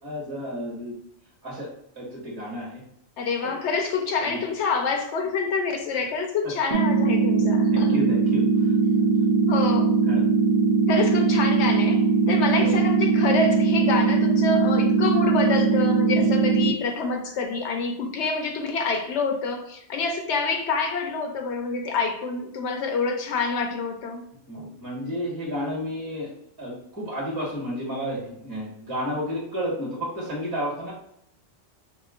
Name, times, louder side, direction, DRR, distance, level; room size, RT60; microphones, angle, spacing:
voice 1, 0.0-0.9 1.4-1.7 1.9-2.8 3.4-3.5 4.3-4.4 6.4-6.5 7.7-8.4 10.1-10.2 11.6-11.7 12.6-12.7 16.1-16.3 24.5-26.3 26.6-30.9, equal, 20° right, -5 dB, 1.2 m, -31 dB
voice 2, 3.2-7.9 9.5-9.9 10.9-24.2, left 4 dB, 75° left, 3 dB, 0.9 m, -27 dB
sound 1, 6.7-16.7, right 5 dB, 55° right, 0.5 m, -20 dB
4.9 x 2.2 x 2.4 m, 0.73 s
omnidirectional pair, 1.2 m